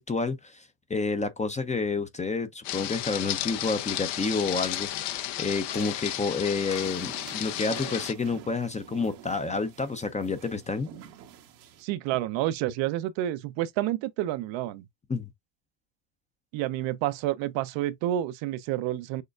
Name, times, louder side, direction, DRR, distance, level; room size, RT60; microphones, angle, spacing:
voice 1, 0.0-10.9 15.1-15.3, left 4 dB, 15° left, 0.5 m, -29 dB
sound 1, 2.6-8.1, left 13 dB, 55° left, 0.7 m, -33 dB
sound 2, 3.9-4.2 4.6-5.2 5.7-6.3 6.7-7.3 7.7-8.1 8.7-8.8, left 4 dB, 40° left, 1.2 m, -44 dB
sound 3, 6.8-11.8, right 9 dB, 90° right, 1.3 m, -47 dB
voice 2, 11.8-14.9 16.5-19.2, right 13 dB, 65° right, 0.6 m, -29 dB
6.5 x 2.2 x 2.4 m
supercardioid pair, 95°, 50 cm